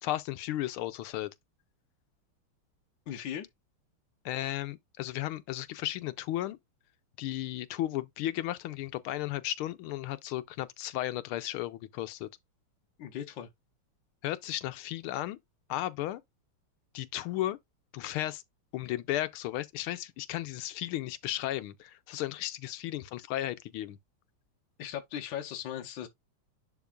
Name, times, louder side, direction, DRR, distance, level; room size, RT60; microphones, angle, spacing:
voice 1, 0.0-1.3 4.2-6.6 7.2-12.3 14.2-15.4 15.7-16.2 16.9-17.6 17.9-18.4 18.7-24.0, left 14 dB, 85° left, 1.5 m, -34 dB
voice 2, 3.1-3.5 13.0-13.5 24.8-26.1, left 10 dB, 65° left, 1.5 m, -38 dB
11.0 x 3.6 x 2.3 m
omnidirectional pair, 2.3 m